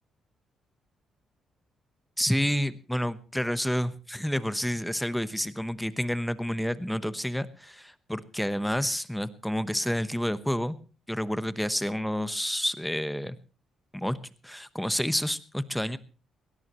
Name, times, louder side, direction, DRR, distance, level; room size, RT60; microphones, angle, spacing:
voice 1, 2.2-10.8 11.1-13.4 13.9-14.2 14.4-16.0, equal, 5° left, 14 dB, 1.0 m, -29 dB
20.5 x 18.0 x 3.1 m, 0.34 s
cardioid pair, 90°, 0 cm